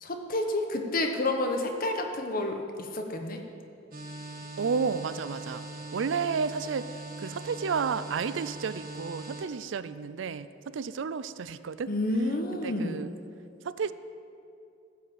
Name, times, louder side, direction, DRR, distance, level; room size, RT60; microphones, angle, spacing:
voice 1, 0.0-3.4 11.9-13.0, left 2 dB, 50° left, 4 dB, 1.2 m, -29 dB
sound 1, 3.9-9.4, right 2 dB, 50° right, 1.3 m, -41 dB
voice 2, 4.6-5.7 5.9-6.9 7.2-11.9 12.6-13.1 13.6-13.9, right 5 dB, 75° right, 14 dB, 0.4 m, -31 dB
15.0 x 5.6 x 7.8 m, 2.6 s
head